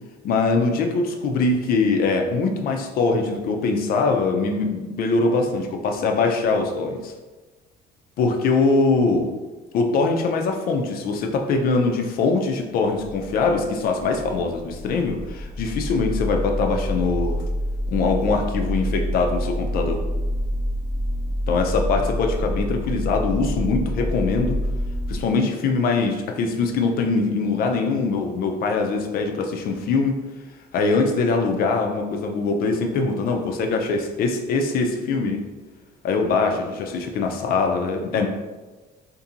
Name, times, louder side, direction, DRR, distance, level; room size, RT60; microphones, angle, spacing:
voice 1, 0.2-7.1 8.2-9.3 9.7-17.4 17.9-20.0 21.5-24.6 25.1-30.2 30.7-35.4 36.0-38.3, left 4 dB, 60° left, 4 dB, 0.4 m, -22 dB
sound 1, 12.9-25.2, equal, 10° left, 0.6 m, -27 dB
2.7 x 2.6 x 2.5 m, 1.2 s
cardioid pair, 110°, 17 cm